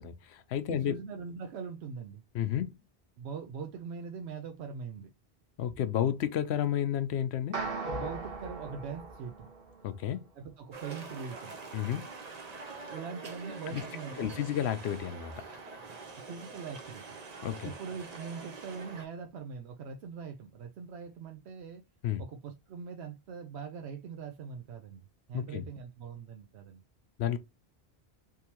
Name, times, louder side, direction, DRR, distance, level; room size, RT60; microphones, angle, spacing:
voice 1, 0.0-0.9 2.3-2.8 5.6-7.6 9.8-10.2 11.7-12.1 13.7-13.8 14.2-15.3 17.4-17.7 22.0-22.2 25.3-25.7 27.2-27.4, left 10 dB, 80° left, 0.9 m, -31 dB
voice 2, 0.7-2.2 3.2-5.1 7.8-9.5 10.4-11.5 12.9-14.5 16.3-17.2 17.6-21.8 22.2-25.0 25.3-26.8, right 6 dB, 85° right, 0.9 m, -42 dB
sound 1, 7.5-10.0, right 3 dB, 65° right, 1.1 m, -38 dB
sound 2, 10.7-19.1, right 4 dB, 45° right, 0.7 m, -45 dB
3.6 x 2.8 x 2.8 m
omnidirectional pair, 1.1 m